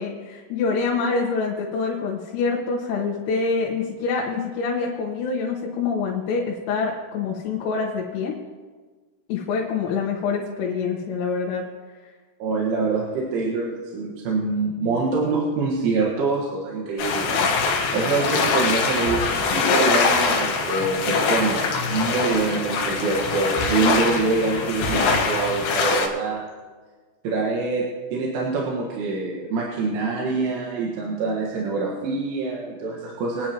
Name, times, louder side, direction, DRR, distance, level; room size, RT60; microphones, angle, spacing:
voice 1, 0.0-8.3 9.3-11.6, left 4 dB, 90° left, -3 dB, 4.0 m, -26 dB
voice 2, 12.4-17.4 17.6-26.4 27.2-27.9 28.1-33.5, right 3 dB, 75° right, -3 dB, 3.9 m, -25 dB
sound 1, 17.0-26.1, left 4 dB, 65° left, 3.2 m, -23 dB
27.0 x 9.6 x 3.0 m, 1.4 s
omnidirectional pair, 5.7 m